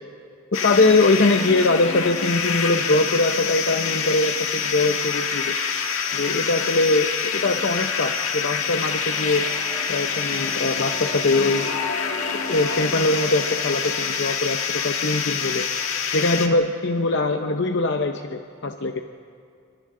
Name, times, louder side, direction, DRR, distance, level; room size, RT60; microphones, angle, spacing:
sound 1, 0.5-16.5, left 6 dB, 75° left, 1.6 m, -26 dB
voice 1, 0.5-5.5 6.1-9.4 9.9-11.7 12.5-15.7 16.1-19.0, left 2 dB, 55° left, 6 dB, 0.7 m, -22 dB
sound 2, 8.9-14.0, equal, 15° left, 2.8 m, -41 dB
29.5 x 25.0 x 3.8 m, 2.3 s
head